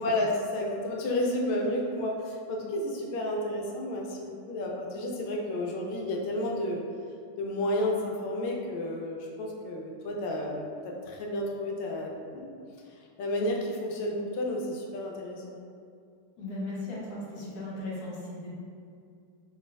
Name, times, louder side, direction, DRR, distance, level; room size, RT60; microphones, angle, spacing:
voice 1, 0.0-6.8 7.4-12.5 13.2-15.6, left 1 dB, 80° left, -1 dB, 1.4 m, -31 dB
voice 2, 16.4-18.5, left 2 dB, 55° left, -6 dB, 1.3 m, -37 dB
4.0 x 3.2 x 2.5 m, 2.4 s
omnidirectional pair, 2.4 m